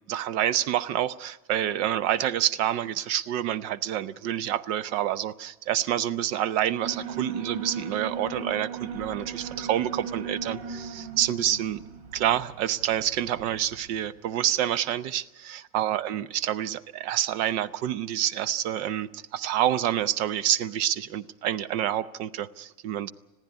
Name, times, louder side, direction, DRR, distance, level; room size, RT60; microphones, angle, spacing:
voice 1, 0.1-11.8 12.1-23.1, right 11 dB, 40° right, 0.6 m, -28 dB
Alarm, 6.8-13.9, right 5 dB, 75° right, 3.2 m, -37 dB
21.5 x 15.0 x 9.5 m
supercardioid pair, 170°, 19 cm